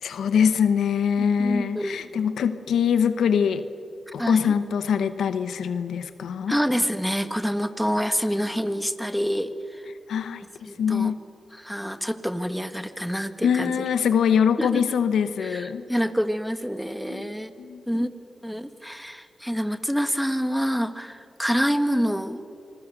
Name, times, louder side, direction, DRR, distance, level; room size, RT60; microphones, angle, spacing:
voice 1, 0.0-3.6 4.1-6.6 10.1-10.4 10.8-11.2 13.4-15.8 17.1-17.8, left 7 dB, 90° left, 11 dB, 0.9 m, -23 dB
voice 2, 1.2-2.0 4.2-4.5 6.5-9.9 10.7-11.2 11.5-13.9 14.6-14.8 15.4-17.5 17.9-18.1 18.4-22.4, equal, ahead, 10 dB, 1.6 m, -27 dB
27.0 x 21.0 x 6.7 m, 2.6 s
cardioid pair, 55°, 0 cm